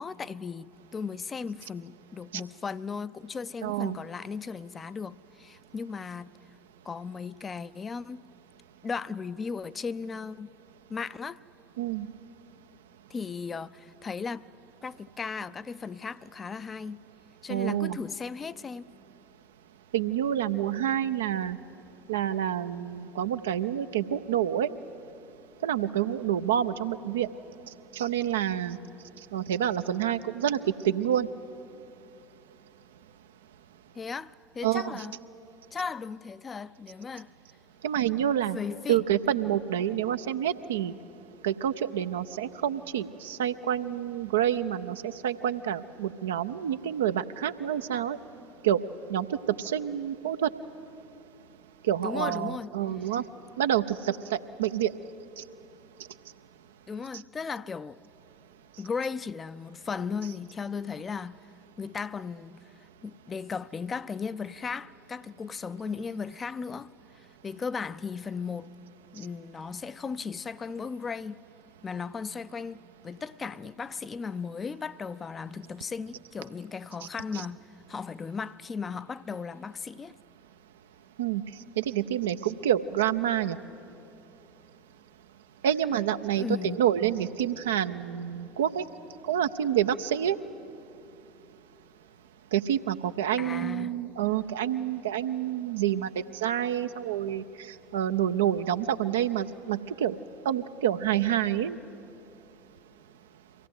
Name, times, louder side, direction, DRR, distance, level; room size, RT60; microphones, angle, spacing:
voice 1, 0.0-6.3 6.9-8.2 8.8-10.5 10.9-11.4 13.1-14.5 14.8-17.0 17.4-18.8 34.0-35.1 35.7-37.3 38.5-39.0 52.0-52.7 56.9-58.0 58.8-61.4 61.8-62.6 63.0-66.9 67.2-68.7 69.1-71.4 71.8-80.2 86.4-86.8 93.4-93.9, left 5 dB, 25° left, 0.5 m, -36 dB
voice 2, 3.6-4.0 11.8-12.1 17.5-18.0 19.9-21.6 22.1-24.7 25.6-27.3 27.9-28.8 29.3-31.3 34.6-35.0 37.8-38.6 38.9-40.9 41.4-48.2 48.6-48.8 49.1-50.5 51.9-53.2 53.6-54.9 55.4-55.5 77.3-77.4 81.2-81.4 81.8-83.6 85.6-88.9 89.2-90.4 92.5-96.1 96.3-97.4 97.9-100.1 100.5-101.8, right 10 dB, 70° right, 0.5 m, -28 dB
23.5 x 17.0 x 7.7 m
figure-of-eight pair, 65°, 0 cm